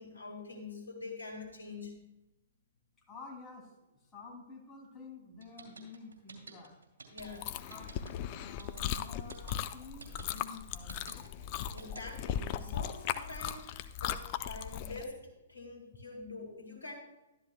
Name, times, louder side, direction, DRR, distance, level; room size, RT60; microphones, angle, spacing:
voice 1, 0.0-1.9 7.1-7.6 11.7-16.9, left 3 dB, 80° left, 0 dB, 2.3 m, -45 dB
voice 2, 3.1-6.8 7.7-7.9 8.3-11.3, left 3 dB, 15° left, -2 dB, 2.9 m, -50 dB
sound 1, 5.4-12.3, right 5 dB, 70° right, 2.8 m, -51 dB
Chewing mastication, 7.2-15.0, left 10 dB, 40° left, 0.6 m, -38 dB
13.0 x 12.5 x 2.3 m, 0.97 s
figure-of-eight pair, 120°, 0 cm